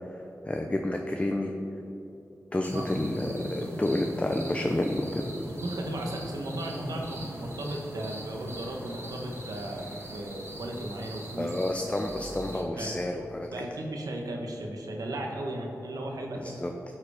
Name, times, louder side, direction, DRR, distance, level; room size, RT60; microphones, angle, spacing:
voice 1, 0.1-1.5 2.5-5.3 11.4-13.7 16.4-16.7, left 1 dB, 20° left, 3 dB, 0.6 m, -30 dB
sound 1, 2.6-12.6, equal, 45° right, 2.0 m, -40 dB
voice 2, 5.6-11.5 12.4-12.9 13.5-16.5, right 1 dB, 85° right, 1 dB, 1.2 m, -36 dB
12.5 x 4.7 x 4.9 m, 2.9 s
cardioid pair, 65°, 6 cm